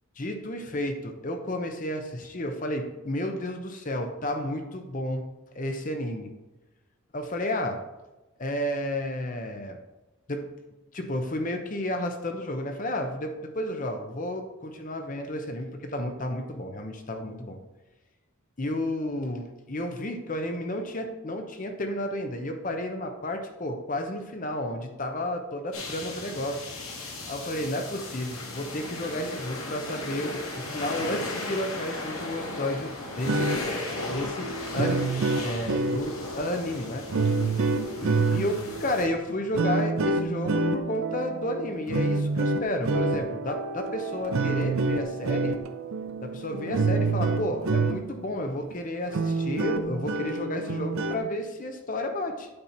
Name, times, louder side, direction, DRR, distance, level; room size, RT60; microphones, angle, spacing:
voice 1, 0.2-6.3 7.1-7.8 8.4-9.8 10.3-10.5 10.9-17.6 18.6-26.6 27.3-33.5 34.1-35.0 35.4-37.1 38.0-45.6 46.2-52.5, left 1 dB, 35° left, 5 dB, 0.7 m, -32 dB
sound 1, 25.7-39.1, left 2 dB, 75° left, 1.6 m, -36 dB
sound 2, 33.1-48.3 48.7-48.8 49.1-51.3, right 3 dB, 70° right, 0.5 m, -28 dB
8.7 x 4.3 x 4.4 m, 1.1 s
head